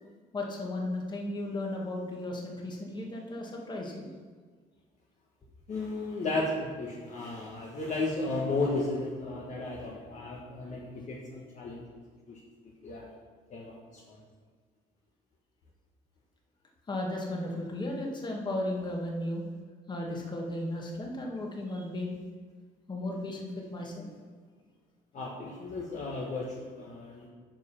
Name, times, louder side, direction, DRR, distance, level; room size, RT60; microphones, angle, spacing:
voice 1, 0.3-4.1 16.9-19.4 19.9-22.2 22.9-24.1, left 1 dB, 25° left, 0 dB, 1.7 m, -35 dB
voice 2, 5.7-11.8 12.3-12.4 12.8-13.1 13.5-13.8 14.1-14.2 25.1-27.3, left 2 dB, 45° left, -2 dB, 1.3 m, -34 dB
9.1 x 5.1 x 5.7 m, 1.5 s
cardioid pair, 110°, 17 cm